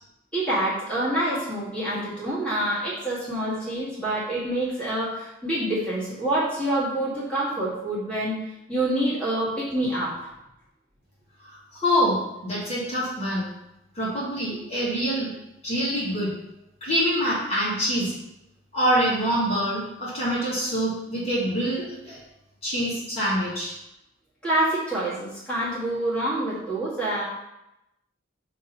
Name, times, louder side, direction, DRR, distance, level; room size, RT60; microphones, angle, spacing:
voice 1, 0.3-8.4 8.7-10.3 24.4-27.2, right 1 dB, 5° left, -10 dB, 1.8 m, -26 dB
voice 2, 11.5-13.5 14.0-15.3 15.6-16.3 16.8-18.1 18.7-22.2 22.6-23.7, equal, 30° left, -7 dB, 1.9 m, -25 dB
6.3 x 3.0 x 5.3 m, 0.90 s
head